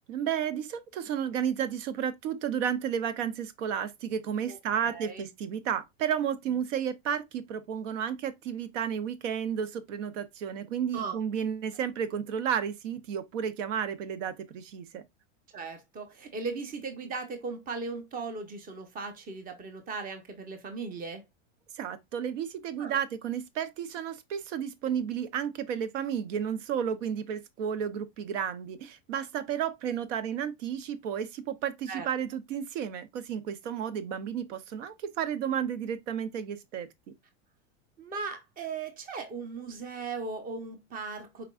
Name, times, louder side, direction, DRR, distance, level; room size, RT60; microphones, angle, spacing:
voice 1, 0.1-15.0 21.7-36.9, right 8 dB, 80° right, 0.8 m, -32 dB
voice 2, 4.5-5.3 10.9-11.2 15.5-21.2 22.8-23.0 31.9-32.1 38.0-41.5, right 4 dB, 25° right, 1.0 m, -38 dB
4.7 x 3.5 x 2.4 m
supercardioid pair, 135°, 37 cm